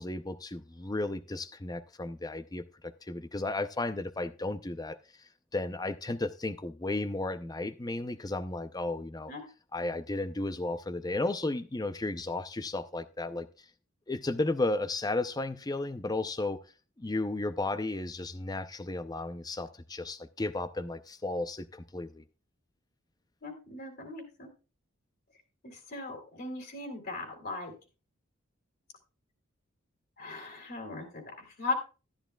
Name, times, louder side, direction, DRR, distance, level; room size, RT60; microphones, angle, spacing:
voice 1, 0.0-5.0 5.5-9.3 9.7-13.5 14.1-16.6 17.0-22.2, left 2 dB, 20° left, 0.6 m, -34 dB
voice 2, 23.4-24.5 25.6-27.7 30.2-31.7, left 3 dB, 50° left, 2.9 m, -38 dB
12.5 x 11.5 x 2.3 m
head